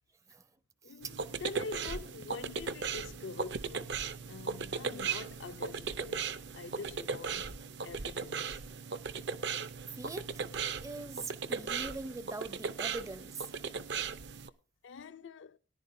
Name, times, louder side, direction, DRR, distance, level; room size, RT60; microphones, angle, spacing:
voice 1, 0.8-4.0 4.3-7.5 7.8-8.6 14.8-15.6, left 4 dB, 75° left, 0.5 m, -45 dB
sound 1, 0.9-13.9, right 1 dB, 80° right, 1.6 m, -66 dB
sound 2, 1.0-14.5, right 5 dB, 65° right, 0.6 m, -37 dB
voice 2, 10.0-10.4 10.8-13.5, right 3 dB, 15° right, 0.5 m, -42 dB
18.5 x 10.5 x 2.7 m
head